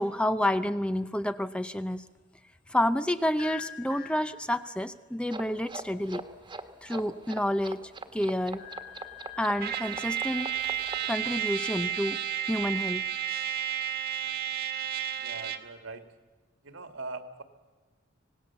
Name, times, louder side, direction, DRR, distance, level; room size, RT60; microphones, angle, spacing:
voice 1, 0.0-2.0 2.7-6.2 6.8-8.6 9.4-10.5 11.1-12.2 12.5-13.0, left 1 dB, 5° left, 11 dB, 0.6 m, -29 dB
sound 1, 3.4-4.9 6.8-7.6 8.0-9.8, left 10 dB, 45° left, 2.0 m, -45 dB
sound 2, 5.3-11.0, right 3 dB, 25° right, 1.5 m, -41 dB
Trumpet, 9.6-15.7, right 9 dB, 55° right, 1.7 m, -32 dB
voice 2, 15.1-16.1 16.6-17.4, right 3 dB, 70° right, 8 dB, 2.1 m, -41 dB
26.0 x 18.5 x 7.4 m, 1.4 s
head